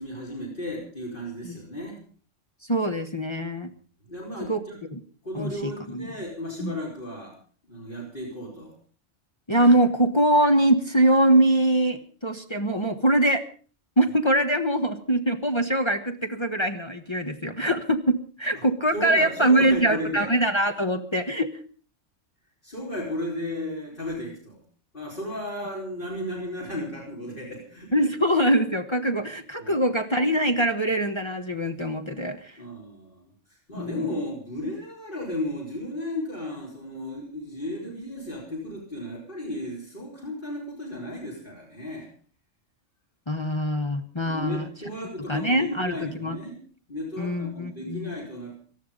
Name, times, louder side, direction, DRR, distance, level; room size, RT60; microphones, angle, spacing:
voice 1, 0.0-2.0 4.0-4.8 5.2-7.4 7.7-8.7 18.9-20.3 22.6-24.6 24.9-27.9 29.6-29.8 32.6-42.1 44.2-46.6 46.9-48.5, left 1 dB, 40° left, -3 dB, 5.0 m, -34 dB
voice 2, 2.6-3.7 4.5-4.6 4.9-5.0 5.3-6.1 6.6-6.8 9.5-13.4 14.0-21.5 27.9-32.6 33.7-34.1 43.3-44.6 45.3-46.4 47.2-48.2, right 1 dB, 25° left, 5 dB, 1.1 m, -23 dB
18.0 x 13.5 x 5.3 m, 0.41 s
omnidirectional pair, 1.3 m